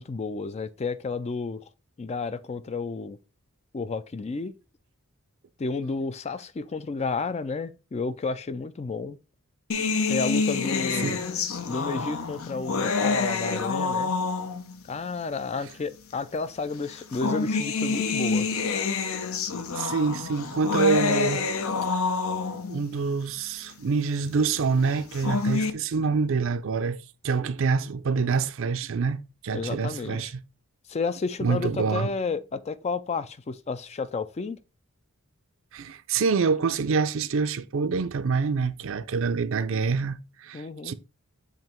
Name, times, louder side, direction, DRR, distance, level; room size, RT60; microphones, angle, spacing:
voice 1, 0.0-1.6 2.0-3.2 3.7-4.5 5.6-9.2 10.1-11.2 11.7-14.1 14.9-18.5 29.5-30.3 30.9-34.6 40.5-40.9, left 4 dB, 30° left, 0.3 m, -31 dB
sound 1, 9.7-14.8 15.7-15.8 16.9-22.8 24.9-25.7, left 4 dB, 70° left, 0.7 m, -27 dB
voice 2, 19.7-21.5 22.7-27.0 27.2-30.3 31.4-32.1 35.7-40.9, right 5 dB, 60° right, 0.5 m, -26 dB
7.4 x 2.9 x 4.4 m
head